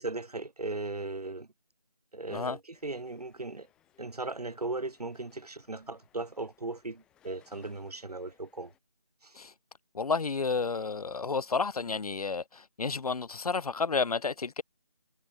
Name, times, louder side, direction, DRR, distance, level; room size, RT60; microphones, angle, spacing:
voice 1, 0.0-1.5 2.1-3.7 4.0-8.7 9.2-9.4, right 2 dB, 85° right, 1.4 m, -37 dB
sound 1, 2.7-8.8, left 11 dB, 5° left, 6.6 m, -67 dB
voice 2, 9.9-14.6, left 4 dB, 75° left, 0.5 m, -31 dB
figure-of-eight pair, 170°, 20 cm